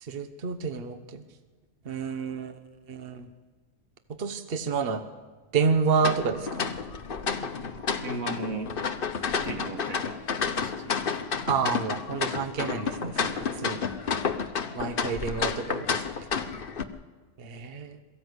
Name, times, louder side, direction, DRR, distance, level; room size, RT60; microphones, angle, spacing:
voice 1, 0.0-1.2 1.8-2.6 2.9-3.3 4.2-5.0 5.5-6.7 11.5-13.8 14.7-16.0 17.4-18.0, right 5 dB, 45° right, 9 dB, 1.2 m, -29 dB
sound 1, 6.0-16.8, left 6 dB, 45° left, 1.0 m, -30 dB
voice 2, 8.0-8.8 9.3-11.3, right 3 dB, 85° right, 5 dB, 2.2 m, -37 dB
22.5 x 15.0 x 8.0 m, 1.3 s
omnidirectional pair, 1.4 m